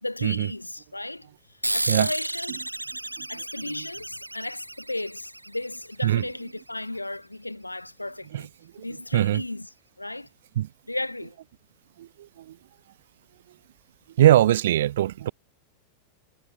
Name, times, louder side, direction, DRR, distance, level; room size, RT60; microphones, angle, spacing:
voice 1, 0.0-1.3 1.7-2.6 3.3-8.5 8.8-9.7 10.0-10.3 10.9-11.4, left 2 dB, 85° left, 1.7 m, -34 dB
sound 1, 1.6-6.6, right 1 dB, 85° right, 1.5 m, -33 dB
voice 2, 9.1-9.4 10.5-10.7 12.0-12.6 14.2-15.3, right 13 dB, 60° right, 1.4 m, -22 dB
figure-of-eight pair, 90°, 0 cm